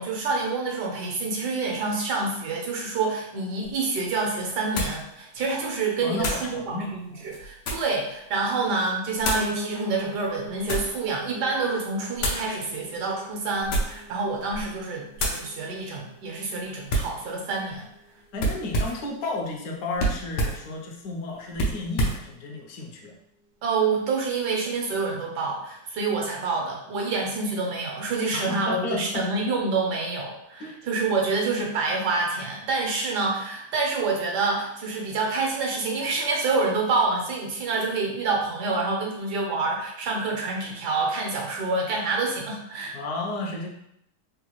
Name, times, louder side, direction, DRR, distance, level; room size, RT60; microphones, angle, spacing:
voice 1, 0.0-6.6 6.9-17.9 23.6-43.0, right 3 dB, 75° right, -1 dB, 1.4 m, -27 dB
sound 1, 3.6-3.7 4.8-5.0 6.2-6.5 7.2-8.0 9.2-9.5 10.3-11.0 12.2-12.5 13.6-14.1 14.5-14.7 15.2-15.5 16.9-17.2 18.4-19.1 20.0-20.6 21.5-22.2, right 1 dB, 85° left, 1.3 m, -28 dB
voice 2, 6.0-7.3 18.3-23.1 28.3-29.2 30.6-30.7 42.9-43.7, left 2 dB, 70° left, 0 dB, 1.0 m, -32 dB
Piano, 9.3-18.4 18.8-20.0 20.3-20.4 20.6-20.7 20.9-21.0 21.6-21.7, right 2 dB, 55° right, 0.4 m, -41 dB
3.7 x 2.3 x 2.9 m, 0.77 s
omnidirectional pair, 1.8 m